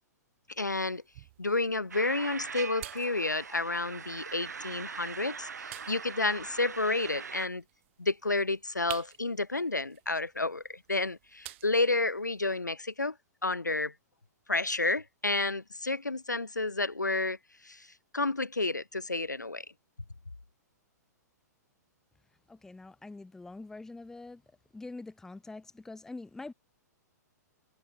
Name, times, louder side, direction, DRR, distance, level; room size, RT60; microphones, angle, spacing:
sound 1, 0.5-12.6, right 18 dB, 45° right, 2.2 m, -52 dB
voice 1, 0.6-1.0 1.4-7.6 8.0-13.2 13.4-13.9 14.5-17.4 17.6-17.9 18.1-19.6, left 3 dB, 80° left, 1.6 m, -30 dB
sound 2, 1.9-7.5, right 6 dB, 70° right, 2.8 m, -42 dB
voice 2, 22.5-24.4 24.7-26.5, left 3 dB, 5° left, 0.9 m, -44 dB
figure-of-eight pair, 110°, 9 cm